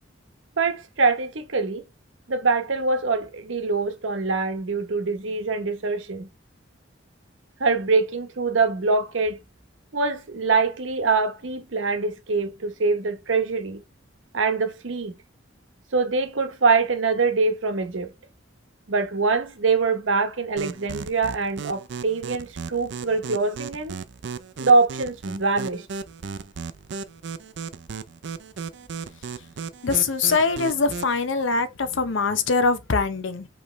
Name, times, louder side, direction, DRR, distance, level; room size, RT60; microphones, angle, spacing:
voice 1, 0.6-1.8 2.3-6.3 7.6-9.4 9.9-13.8 14.3-15.1 15.9-18.1 18.9-24.0 24.6-25.8, right 4 dB, 85° right, 0.9 m, -24 dB
sound 1, 20.6-31.2, right 5 dB, 65° right, 0.4 m, -36 dB
voice 2, 29.8-33.5, left 4 dB, 75° left, 0.7 m, -23 dB
5.2 x 3.1 x 3.1 m
head